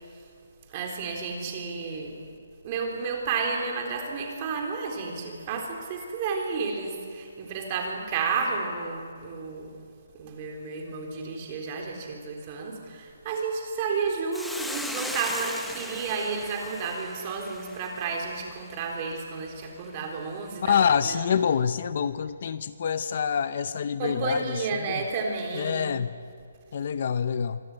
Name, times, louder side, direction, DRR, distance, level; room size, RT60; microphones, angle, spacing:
voice 1, 0.7-2.2 2.6-9.7 10.1-21.3 24.0-26.0, right 4 dB, 25° right, 1 dB, 3.8 m, -31 dB
Hiss, 14.3-18.8, left 1 dB, ahead, 1.0 m, -38 dB
voice 2, 20.6-25.0 25.5-26.2 26.7-27.6, left 7 dB, 40° left, 13 dB, 0.6 m, -26 dB
25.5 x 20.5 x 9.7 m, 2.2 s
hypercardioid pair, 175°, 0 cm